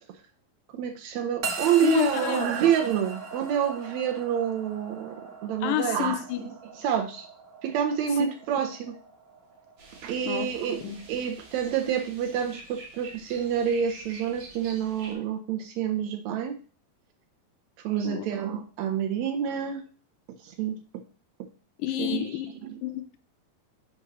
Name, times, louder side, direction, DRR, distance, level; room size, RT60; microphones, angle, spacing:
voice 1, 0.7-5.2 5.4-6.2 6.8-7.3 7.6-9.0 10.0-16.6 17.8-19.8 20.4-20.7 22.0-22.3 22.6-22.8, right 8 dB, 85° right, 1.5 m, -28 dB
sound 1, 1.4-11.8, right 4 dB, 50° right, 1.3 m, -40 dB
voice 2, 1.8-2.7 5.6-6.5 8.2-8.3 10.2-10.5 10.8-11.0 18.0-18.3 21.8-22.5 22.8-23.2, left 15 dB, 80° left, 2.1 m, -29 dB
sound 2, 9.8-15.1, right 3 dB, 70° right, 3.8 m, -47 dB
7.5 x 3.0 x 6.0 m
omnidirectional pair, 4.1 m